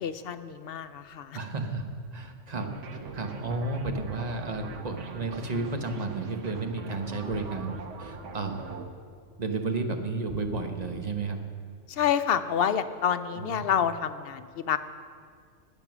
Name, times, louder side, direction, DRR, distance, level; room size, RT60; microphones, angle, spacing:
voice 1, 0.0-1.4 11.9-14.8, left 8 dB, 60° left, 12 dB, 0.7 m, -28 dB
voice 2, 1.3-1.8 2.1-2.7 3.1-8.8 9.4-11.4 13.4-13.7, right 3 dB, 35° right, 5 dB, 1.1 m, -32 dB
sound 1, 2.4-6.7 7.2-9.6 10.2-12.3 12.7-12.8, left 2 dB, 5° right, 4.4 m, -51 dB
sound 2, 2.5-8.9, right 4 dB, 80° right, 1.3 m, -42 dB
20.0 x 7.1 x 6.1 m, 2.1 s
omnidirectional pair, 1.3 m